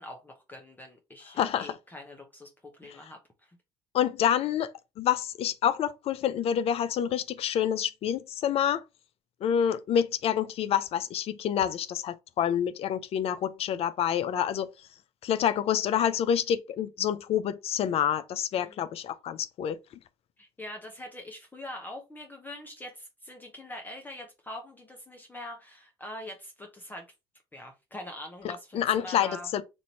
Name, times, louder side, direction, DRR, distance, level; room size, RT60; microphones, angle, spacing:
voice 1, 0.0-3.6 18.5-18.8 20.4-27.1 27.5-29.5, left 1 dB, 15° left, 0.8 m, -43 dB
voice 2, 1.4-1.7 3.9-4.7 5.0-8.8 9.4-14.7 15.2-19.8 28.7-29.6, left 9 dB, 50° left, 0.5 m, -27 dB
3.0 x 2.6 x 4.0 m
hypercardioid pair, 70°, 13 cm